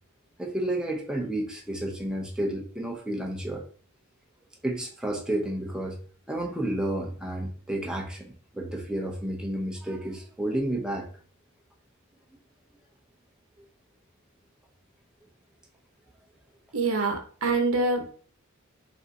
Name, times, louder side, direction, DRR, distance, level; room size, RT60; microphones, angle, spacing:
voice 1, 0.4-3.6 4.6-6.0 6.3-11.1, right 1 dB, 5° right, 0 dB, 0.6 m, -31 dB
voice 2, 16.7-18.1, right 3 dB, 85° right, 5 dB, 0.8 m, -25 dB
5.4 x 2.6 x 2.7 m, 0.43 s
head